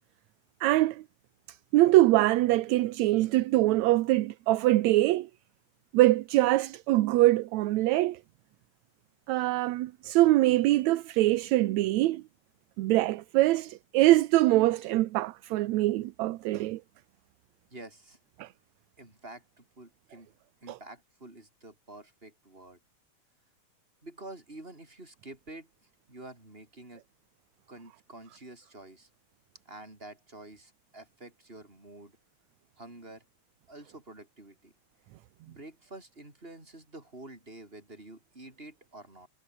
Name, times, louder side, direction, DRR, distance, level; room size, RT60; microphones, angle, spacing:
voice 1, 0.6-1.0 1.5-5.3 5.9-8.2 9.3-12.2 12.8-16.8 18.4-18.5 20.7-20.8, right 17 dB, 75° right, 2.0 m, -24 dB
voice 2, 17.7-18.2 19.0-20.3 20.6-22.8 24.0-27.0 27.7-29.1 29.7-32.2 32.8-33.2 33.7-34.7 35.5-39.3, right 2 dB, 15° right, 6.9 m, -48 dB
omnidirectional pair, 3.5 m